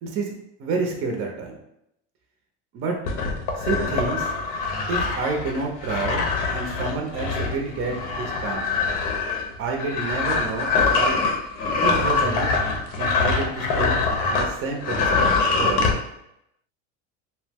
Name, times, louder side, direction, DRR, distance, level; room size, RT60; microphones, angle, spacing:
voice 1, 0.0-0.3 0.6-1.6 2.7-3.0 3.6-4.3 4.9-8.6 9.6-11.2 11.8-12.5 13.0-14.0 14.3-15.3 15.6-15.9, right 3 dB, 40° right, 1 dB, 0.5 m, -29 dB
sound 1, 3.1-14.5 14.8-15.9, left 4 dB, 75° left, 0.7 m, -24 dB
2.6 x 2.0 x 3.4 m, 0.80 s
supercardioid pair, 120°, 34 cm